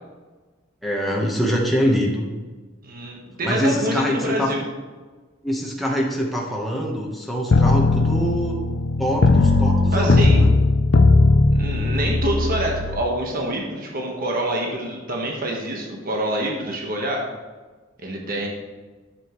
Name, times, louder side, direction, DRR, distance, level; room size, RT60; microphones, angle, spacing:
voice 1, 0.8-2.3 3.4-4.5 5.4-8.6 9.0-10.5, equal, ahead, -3 dB, 1.1 m, -24 dB
voice 2, 2.8-4.6 9.9-10.4 11.5-17.3 18.0-18.5, right 1 dB, 50° right, 0 dB, 1.3 m, -26 dB
sound 1, 7.5-13.0, left 3 dB, 70° left, 0.6 m, -18 dB
9.9 x 7.1 x 3.1 m, 1.3 s
head